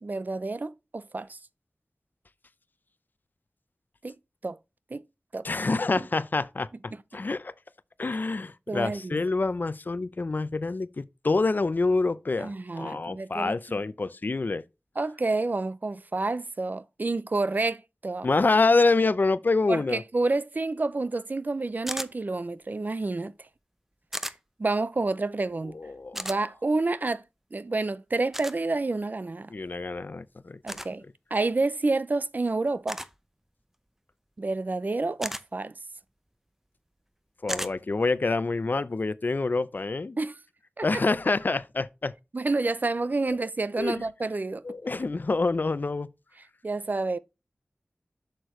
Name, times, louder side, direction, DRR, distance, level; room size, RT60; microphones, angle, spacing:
voice 1, 0.0-1.4 4.0-4.1 4.4-4.6 4.9-5.0 5.3-5.5 8.7-9.2 12.4-13.6 15.0-18.3 19.7-23.3 24.6-25.8 26.1-27.2 27.5-29.5 30.6-31.0 31.3-33.0 34.4-35.7 37.5-37.6 40.2-40.4 40.8-41.0 42.3-44.6 46.6-47.2, right 3 dB, 50° right, 0.5 m, -29 dB
voice 2, 5.4-7.5 8.0-14.7 18.2-20.0 25.7-26.3 29.5-30.6 37.4-40.2 40.8-42.1 43.8-44.0 44.6-46.1, left 3 dB, 55° left, 0.5 m, -26 dB
sound 1, 21.9-22.1 24.1-24.4 26.2-26.4 28.3-28.6 30.7-30.9 32.9-33.2 35.2-35.4 37.5-37.7, equal, 10° right, 0.6 m, -34 dB
7.8 x 6.6 x 3.1 m
wide cardioid pair, 60°, 4 cm